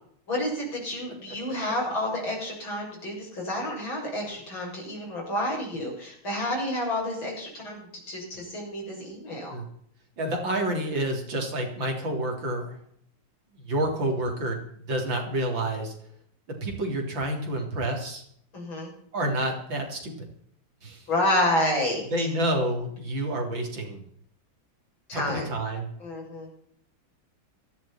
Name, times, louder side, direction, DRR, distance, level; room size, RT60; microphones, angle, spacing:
voice 1, 0.3-9.5 18.5-18.9 21.1-22.3 25.1-25.5 26.0-26.5, left 1 dB, 65° left, -2 dB, 7.8 m, -29 dB
voice 2, 10.2-12.8 13.5-15.9 16.5-18.2 19.1-20.3 20.8-21.0 22.1-24.0 25.1-25.9, right 1 dB, 60° right, 2 dB, 4.0 m, -29 dB
18.0 x 15.0 x 4.3 m, 0.66 s
omnidirectional pair, 2.3 m